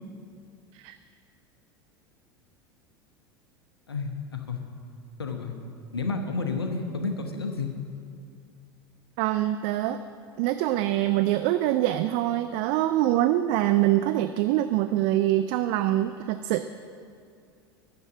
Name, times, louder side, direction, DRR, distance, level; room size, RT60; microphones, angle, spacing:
voice 1, 3.9-4.6 5.2-5.5 5.9-7.7, left 4 dB, 80° left, 5 dB, 1.0 m, -31 dB
voice 2, 9.2-10.0 10.4-16.7, right 14 dB, 50° right, 11 dB, 0.4 m, -24 dB
9.5 x 7.0 x 7.5 m, 2.4 s
figure-of-eight pair, 75°, 13 cm